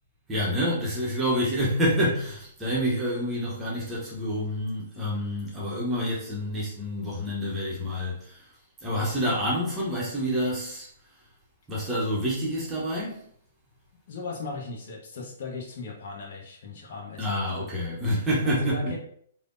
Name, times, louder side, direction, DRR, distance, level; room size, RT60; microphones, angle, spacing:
voice 1, 0.3-8.5 8.8-10.9 11.7-13.2 17.2-18.9, equal, 10° right, 0.7 m, -28 dB
voice 2, 14.1-17.7 18.4-19.0, left 3 dB, 50° left, 0.6 m, -37 dB
3.2 x 2.0 x 2.5 m
figure-of-eight pair, 120°, 0 cm